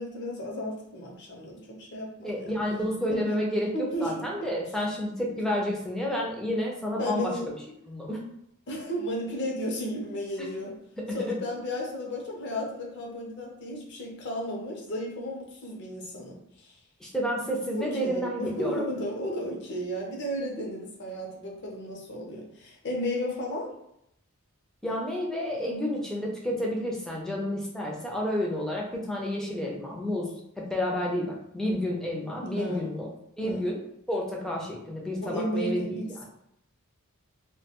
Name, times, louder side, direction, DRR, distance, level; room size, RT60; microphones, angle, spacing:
voice 1, 0.0-2.5 3.1-3.4 3.7-4.5 7.0-7.5 8.7-10.8 11.1-16.8 17.8-23.7 32.4-32.9 33.4-33.7 35.2-36.2, equal, 55° left, -1 dB, 0.6 m, -34 dB
voice 2, 2.2-7.3 7.9-8.2 11.0-11.3 17.0-18.8 24.8-33.1 33.4-33.8 34.1-36.2, equal, ahead, -2 dB, 0.4 m, -30 dB
2.3 x 2.2 x 2.8 m, 0.77 s
head